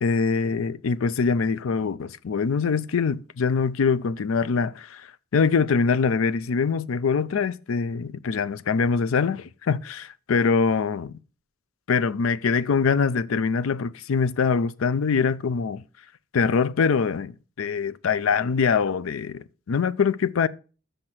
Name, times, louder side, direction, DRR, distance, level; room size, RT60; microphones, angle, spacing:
voice 1, 0.0-5.0 5.3-11.2 11.9-15.8 16.3-20.5, left 5 dB, 75° left, 0.4 m, -23 dB
6.6 x 5.8 x 6.1 m
head